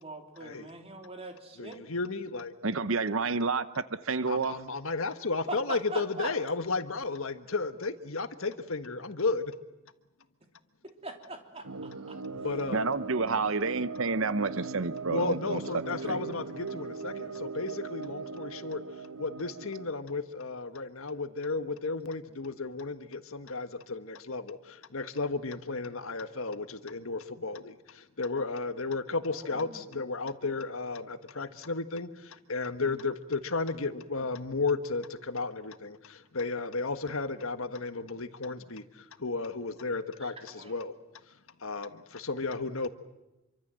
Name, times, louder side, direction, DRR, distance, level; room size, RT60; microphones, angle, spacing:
voice 1, 0.0-1.8 5.5-6.3 11.0-12.2 16.0-16.3 29.3-29.9 40.2-40.8, right 2 dB, 25° right, 4 dB, 3.3 m, -42 dB
voice 2, 1.6-2.5 4.3-9.5 12.4-12.9 15.1-18.8 19.2-40.9 41.6-42.9, left 3 dB, 70° left, 10 dB, 1.5 m, -33 dB
voice 3, 2.6-4.6 12.7-16.2, right 4 dB, 65° right, 14 dB, 0.9 m, -30 dB
sound 1, 11.6-19.9, right 4 dB, 90° right, 1.1 m, -40 dB
27.0 x 24.5 x 7.7 m, 0.97 s
head